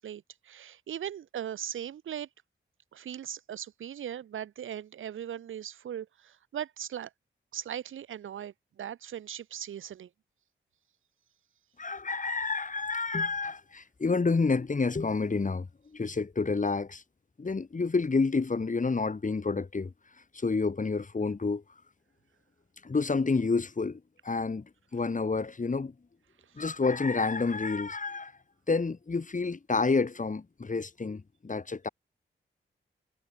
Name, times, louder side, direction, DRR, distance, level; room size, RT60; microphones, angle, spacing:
voice 1, 0.0-2.3 2.9-7.1 7.5-10.1, right 10 dB, 85° right, 1.1 m, -39 dB
voice 2, 11.8-17.0 17.4-19.9 20.3-21.6 22.8-25.9 26.6-28.3 28.7-31.9, left 4 dB, 40° left, 2.6 m, -29 dB
cardioid pair, 55°, 20 cm